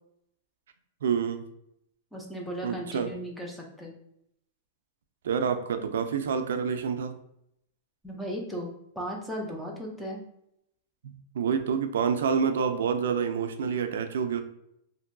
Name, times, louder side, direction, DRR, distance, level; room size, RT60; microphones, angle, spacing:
voice 1, 1.0-1.4 2.6-3.1 5.2-7.1 11.0-14.4, right 6 dB, 85° right, 8 dB, 0.3 m, -28 dB
voice 2, 2.1-3.9 8.0-10.2, equal, ahead, -1 dB, 0.5 m, -36 dB
2.9 x 2.6 x 2.5 m, 0.77 s
supercardioid pair, 160°, 0 cm